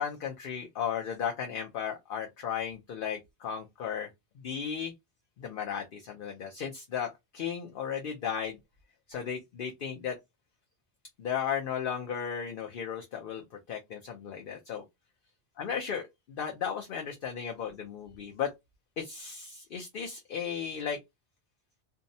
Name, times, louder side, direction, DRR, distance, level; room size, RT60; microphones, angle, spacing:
voice 1, 0.0-4.1 4.4-4.9 5.4-8.6 9.1-10.2 11.2-14.8 15.6-16.0 16.3-18.5 19.0-21.0, left 7 dB, 60° left, 0.7 m, -35 dB
2.6 x 2.0 x 2.6 m
omnidirectional pair, 1.1 m